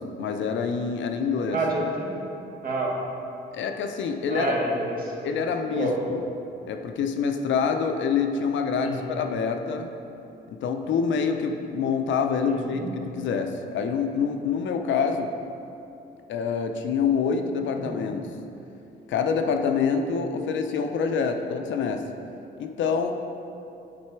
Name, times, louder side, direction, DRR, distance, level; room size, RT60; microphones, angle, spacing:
voice 1, 0.0-1.6 3.5-4.5 5.2-6.2 6.7-9.9 10.5-15.3 16.3-18.3 19.1-22.0 22.6-23.1, left 6 dB, 70° left, 5 dB, 0.5 m, -26 dB
voice 2, 1.5-2.2 2.6-2.9 4.3-5.1 5.7-5.9 8.8-9.1 12.4-12.9 17.8-17.9, right 2 dB, 45° right, -3 dB, 1.5 m, -28 dB
7.5 x 4.1 x 4.6 m, 2.8 s
cardioid pair, 90°, 20 cm